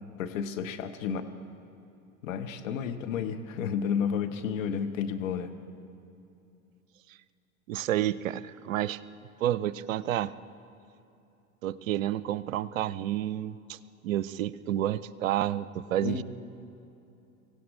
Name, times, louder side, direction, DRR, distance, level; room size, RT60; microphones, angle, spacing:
voice 1, 0.2-1.2 2.2-5.5 16.0-16.2, left 7 dB, 65° left, 7 dB, 1.2 m, -31 dB
voice 2, 7.7-9.0 9.4-10.3 11.6-13.8 14.0-16.2, right 12 dB, 65° right, 17 dB, 0.6 m, -30 dB
24.5 x 16.5 x 3.2 m, 2.8 s
figure-of-eight pair, 75°, 42 cm